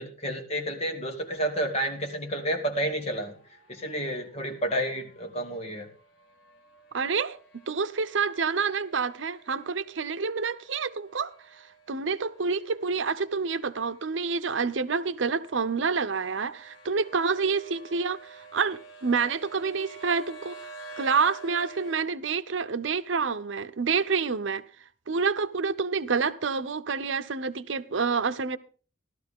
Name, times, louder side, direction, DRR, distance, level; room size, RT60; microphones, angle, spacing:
voice 1, 0.0-3.3 3.7-5.9, right 1 dB, 35° left, 2.5 m, -30 dB
sound 1, 2.4-22.0, right 3 dB, 70° left, 2.3 m, -50 dB
voice 2, 6.9-7.4 7.7-20.6 21.0-24.6 25.1-28.6, right 5 dB, 80° right, 0.7 m, -28 dB
15.0 x 12.5 x 3.6 m
head